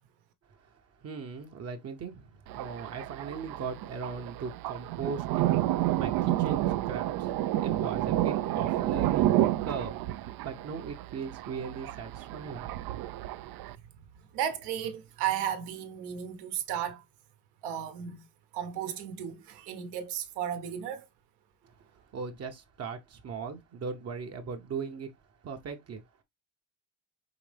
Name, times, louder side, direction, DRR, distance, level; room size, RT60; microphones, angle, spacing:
voice 1, 0.5-12.9 21.6-25.1 25.4-26.2, right 5 dB, 40° right, 0.9 m, -39 dB
Thunder, 2.5-13.8, right 14 dB, 60° right, 0.5 m, -30 dB
voice 2, 14.1-17.0 17.6-18.2 18.5-21.1, right 9 dB, 80° right, 1.1 m, -34 dB
4.9 x 3.1 x 3.3 m
cardioid pair, 125°, 40 cm